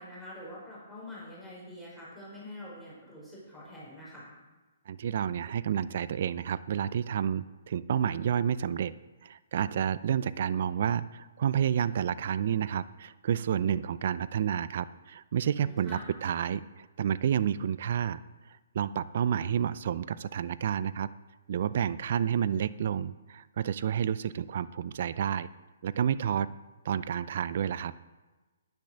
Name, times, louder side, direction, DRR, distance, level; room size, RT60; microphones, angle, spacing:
voice 1, 0.0-4.3 15.6-16.2, left 1 dB, 5° right, -8 dB, 5.2 m, -45 dB
voice 2, 4.9-8.9 9.2-18.2 18.5-21.1 21.5-25.5 25.8-26.5 26.8-27.9, right 9 dB, 55° right, 16 dB, 0.5 m, -30 dB
10.5 x 10.0 x 6.5 m, 1.2 s
hypercardioid pair, 150°, 0 cm